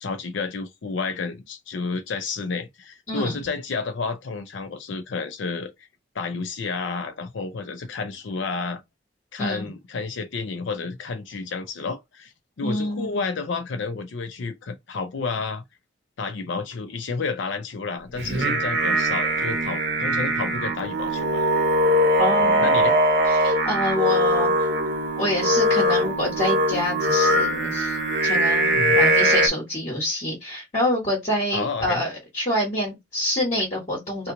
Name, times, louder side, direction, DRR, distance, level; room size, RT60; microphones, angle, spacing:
voice 1, 0.0-5.9 6.1-8.8 9.3-15.6 16.2-21.5 22.4-23.0 28.7-29.0 31.5-32.0, left 4 dB, 80° left, 0.5 m, -31 dB
voice 2, 3.1-3.4 9.4-9.7 12.6-13.2 22.2-22.7 23.3-24.7 25.2-28.0 28.2-34.3, left 1 dB, 35° left, 1.2 m, -27 dB
Singing, 18.1-29.5, right 1 dB, 60° right, 0.7 m, -21 dB
2.9 x 2.3 x 3.7 m
head